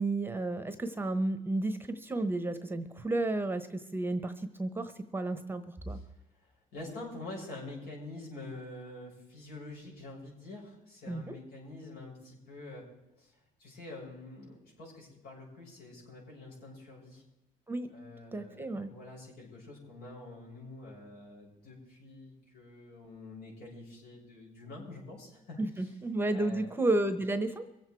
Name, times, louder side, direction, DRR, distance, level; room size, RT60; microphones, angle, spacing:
voice 1, 0.0-4.3 4.6-6.0 11.1-11.3 17.7-17.9 18.3-18.9 25.6-27.6, right 2 dB, 15° right, 9 dB, 1.0 m, -32 dB
voice 2, 6.3-12.8 13.2-17.2 17.9-26.0 26.3-26.7, left 2 dB, 70° left, -3 dB, 6.8 m, -47 dB
23.5 x 8.1 x 4.6 m, 0.95 s
cardioid pair, 110°, 17 cm